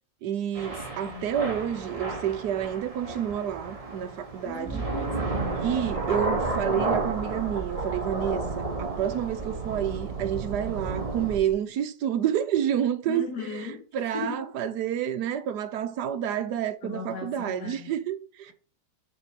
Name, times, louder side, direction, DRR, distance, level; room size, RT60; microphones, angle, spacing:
voice 1, 0.2-4.8 5.5-18.5, right 10 dB, 75° right, 1.4 m, -29 dB
Thunder / Rain, 0.6-11.4, right 2 dB, 20° right, 1.7 m, -32 dB
voice 2, 0.7-1.3 4.4-5.7 13.1-14.5 16.8-18.0, left 5 dB, 65° left, 2.3 m, -38 dB
sound 1, 5.4-11.5, right 7 dB, 60° right, 1.6 m, -39 dB
7.0 x 5.4 x 5.2 m
omnidirectional pair, 1.8 m